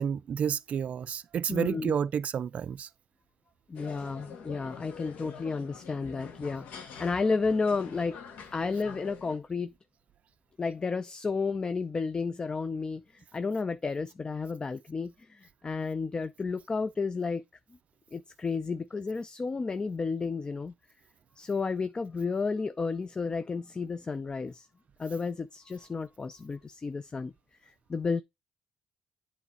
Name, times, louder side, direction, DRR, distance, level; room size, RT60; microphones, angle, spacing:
voice 1, 0.0-2.9, right 8 dB, 55° right, 0.3 m, -30 dB
voice 2, 1.5-1.9 3.7-8.2 8.5-9.7 10.6-17.4 18.1-20.7 21.4-24.7 25.0-27.3 27.6-28.2, left 4 dB, 30° left, 0.5 m, -32 dB
sound 1, 3.7-9.4, left 6 dB, 70° left, 1.5 m, -46 dB
8.1 x 3.2 x 5.5 m
supercardioid pair, 70°, 3 cm